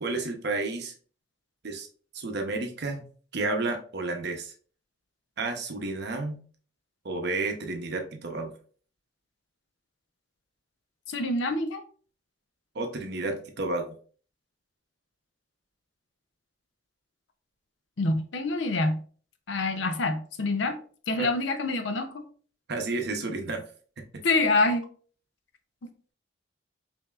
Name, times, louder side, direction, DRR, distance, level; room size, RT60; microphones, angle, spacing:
voice 1, 0.0-0.9 1.6-1.9 2.1-3.1 3.3-4.5 5.4-6.4 7.0-8.5 12.7-14.0 21.2-21.3 22.7-23.6 24.0-24.2, right 3 dB, 60° right, 4 dB, 0.7 m, -31 dB
voice 2, 11.1-11.8 18.0-19.0 19.5-20.8 21.1-22.2 24.2-24.9, left 2 dB, 75° left, 8 dB, 0.6 m, -26 dB
5.4 x 2.7 x 2.3 m, 0.43 s
head